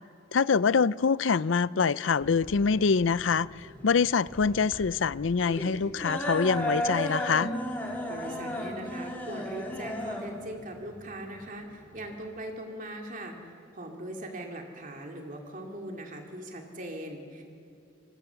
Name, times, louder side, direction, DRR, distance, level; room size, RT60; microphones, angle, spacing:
voice 1, 0.3-7.5, left 5 dB, 80° left, 19 dB, 0.5 m, -25 dB
sound 1, 2.2-12.2, equal, 10° left, 4.2 m, -35 dB
voice 2, 8.1-17.4, right 1 dB, 45° right, 2 dB, 2.7 m, -40 dB
26.5 x 25.5 x 7.1 m, 2.7 s
head